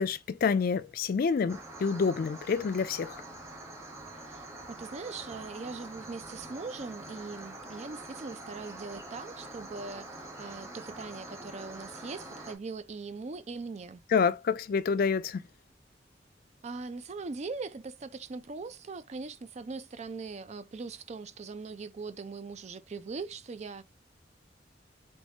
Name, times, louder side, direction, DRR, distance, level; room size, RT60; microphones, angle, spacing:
voice 1, 0.0-3.2 14.1-15.4, left 5 dB, 55° left, 0.4 m, -28 dB
sound 1, 1.5-12.5, right 2 dB, 15° right, 1.2 m, -45 dB
voice 2, 4.1-10.1 10.4-14.0 16.6-23.8, right 4 dB, 40° right, 0.4 m, -41 dB
4.5 x 3.1 x 2.8 m
head